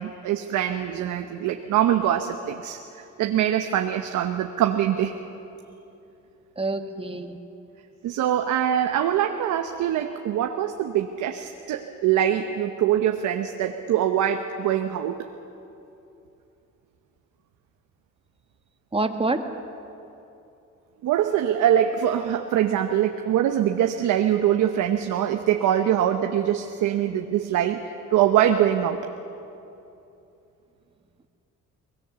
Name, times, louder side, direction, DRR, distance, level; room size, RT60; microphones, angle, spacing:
voice 1, 0.0-5.1 8.0-15.2 21.0-29.0, right 10 dB, 85° right, 5 dB, 1.0 m, -23 dB
voice 2, 6.6-7.4 18.9-19.5, right 2 dB, 20° right, 7 dB, 1.6 m, -26 dB
23.5 x 20.0 x 7.0 m, 2.8 s
cardioid pair, 90°, 30 cm